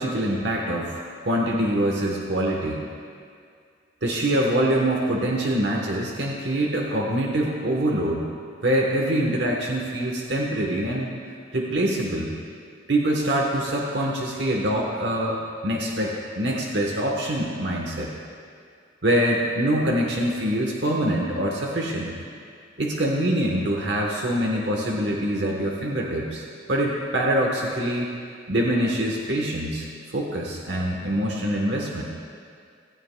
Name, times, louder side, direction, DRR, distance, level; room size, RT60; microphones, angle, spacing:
voice 1, 0.0-2.8 4.0-8.3 8.6-11.1 11.5-12.4 12.9-18.1 19.0-22.1 22.8-28.1 28.5-32.0, right 1 dB, 70° right, -1 dB, 1.2 m, -24 dB
16.5 x 15.0 x 2.3 m, 2.2 s
head